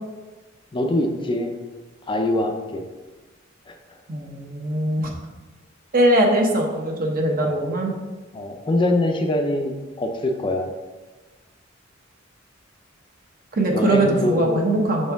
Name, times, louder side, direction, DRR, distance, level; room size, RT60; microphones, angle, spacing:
voice 1, 0.7-1.5 2.1-2.8 3.7-3.8 7.4-7.5 8.3-10.7 13.7-14.6, left 1 dB, 25° left, 4 dB, 0.5 m, -23 dB
voice 2, 4.1-5.1 5.9-7.9 13.5-15.1, right 1 dB, 45° right, 1 dB, 0.9 m, -21 dB
6.6 x 4.3 x 3.5 m, 1.2 s
head